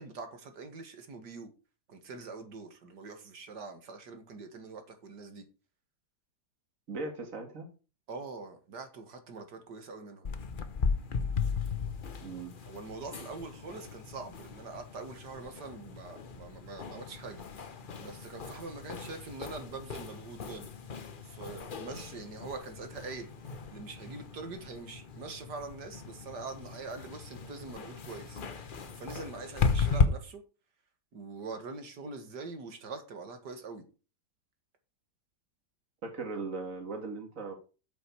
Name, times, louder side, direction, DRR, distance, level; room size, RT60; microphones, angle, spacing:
voice 1, 0.0-1.5 1.9-5.4 8.1-10.3 12.7-17.4 18.0-20.7 21.2-28.4 29.0-30.4 31.1-33.9, right 4 dB, 70° right, 2.2 m, -44 dB
voice 2, 6.9-7.7 12.2-12.5 36.0-37.5, right 3 dB, 50° right, 2.4 m, -38 dB
sound 1, 10.2-30.1, left 5 dB, 40° left, 0.7 m, -36 dB
8.4 x 7.8 x 4.7 m
omnidirectional pair, 1.9 m